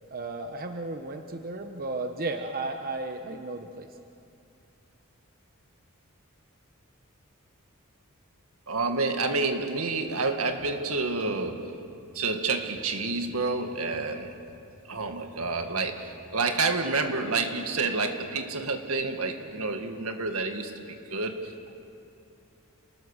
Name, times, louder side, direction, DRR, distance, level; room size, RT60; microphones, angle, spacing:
voice 1, 0.1-3.9, right 2 dB, 45° right, 5 dB, 1.0 m, -34 dB
voice 2, 8.7-11.8 12.1-14.4 14.9-21.7, right 3 dB, 80° right, 5 dB, 1.9 m, -29 dB
30.0 x 20.0 x 6.6 m, 2.7 s
head